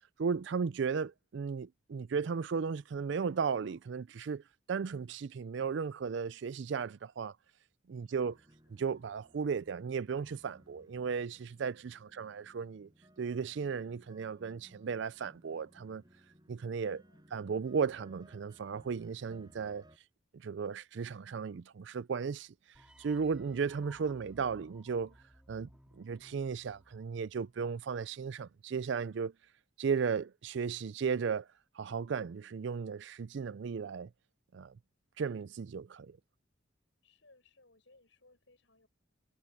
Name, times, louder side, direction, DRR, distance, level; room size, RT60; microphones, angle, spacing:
voice 1, 0.2-4.4 4.7-7.4 7.9-8.3 8.7-12.9 13.2-16.0 16.5-17.0 17.3-19.8 20.4-22.5 23.0-25.1 25.5-25.7 26.0-29.3 29.8-31.5 31.8-34.1 34.5-34.7 35.2-36.2, right 6 dB, 65° right, 0.4 m, -35 dB
voice 2, 8.0-8.4 12.0-12.3 17.0-17.6 37.0-38.9, left 2 dB, 70° left, 6.1 m, -66 dB
sound 1, 8.1-20.0, equal, 20° right, 5.4 m, -62 dB
sound 2, 22.7-27.8, equal, 5° right, 2.9 m, -60 dB
head